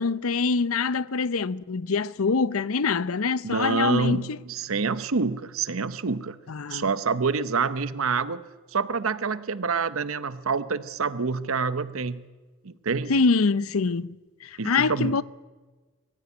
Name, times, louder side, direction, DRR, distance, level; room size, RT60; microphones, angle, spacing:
voice 1, 0.0-4.4 6.5-6.8 13.1-15.2, left 4 dB, 80° left, 0.6 m, -25 dB
voice 2, 3.4-6.4 6.7-8.4 8.7-12.3 12.6-13.2 14.6-15.2, right 4 dB, 75° right, 0.8 m, -27 dB
22.0 x 15.5 x 9.7 m
head